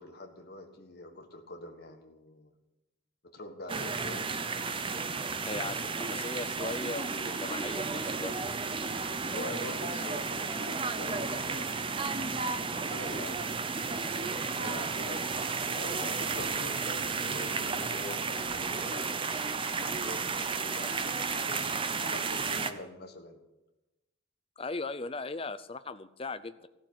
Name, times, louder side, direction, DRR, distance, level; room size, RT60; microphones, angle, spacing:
voice 1, 0.0-2.6 3.2-4.3 9.3-12.1 12.8-14.1 14.5-21.6 22.0-23.4, left 2 dB, 50° left, 4 dB, 1.5 m, -45 dB
sound 1, 3.7-22.7, right 4 dB, 25° right, 0.6 m, -33 dB
voice 2, 5.4-8.3 17.8-18.2 24.6-26.7, left 3 dB, 25° left, 12 dB, 0.6 m, -38 dB
15.0 x 7.2 x 8.8 m, 1.0 s
head